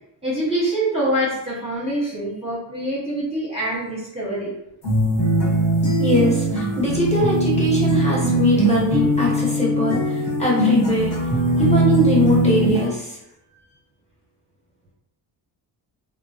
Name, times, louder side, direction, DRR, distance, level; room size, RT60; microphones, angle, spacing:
voice 1, 0.2-4.5, right 1 dB, 15° right, -7 dB, 0.8 m, -25 dB
sound 1, 4.8-12.9, right 1 dB, 45° left, 1.1 m, -20 dB
voice 2, 6.0-11.1 11.6-13.2, left 1 dB, 15° left, -6 dB, 1.0 m, -22 dB
3.0 x 2.1 x 2.7 m, 0.82 s
cardioid pair, 130°, 42 cm